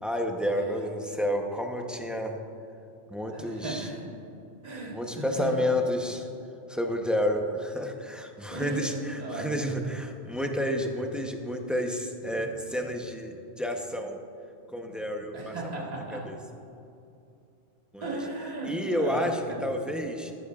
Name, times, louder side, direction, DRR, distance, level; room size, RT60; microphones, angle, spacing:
voice 1, 0.0-2.4 3.1-3.9 4.9-6.3 6.7-14.2 14.7-15.5 16.1-16.4 17.9-18.0 18.6-20.3, equal, ahead, 2 dB, 0.6 m, -30 dB
voice 2, 3.3-4.0 4.6-5.7 8.5-9.5 15.3-16.2 18.0-19.7, right 2 dB, 35° right, -3 dB, 1.7 m, -36 dB
13.5 x 12.0 x 2.4 m, 2.8 s
omnidirectional pair, 1.2 m